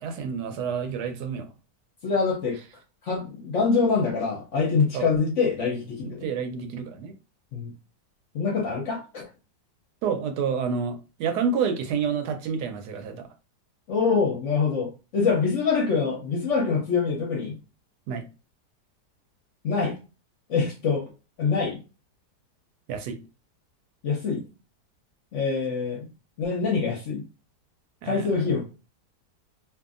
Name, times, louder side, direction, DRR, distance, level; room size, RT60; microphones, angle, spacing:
voice 1, 0.0-1.5 4.9-5.1 6.0-7.1 10.0-13.3 18.1-18.2 22.9-23.2 28.0-28.3, right 6 dB, 75° right, 1.1 m, -29 dB
voice 2, 2.0-2.6 3.0-6.3 7.5-7.7 8.3-9.3 13.9-17.6 19.6-19.9 20.5-21.1 21.4-21.8 24.0-24.4 25.3-26.1 26.4-27.2 28.0-28.6, left 5 dB, 60° left, 0.8 m, -25 dB
2.7 x 2.5 x 2.4 m
omnidirectional pair, 1.8 m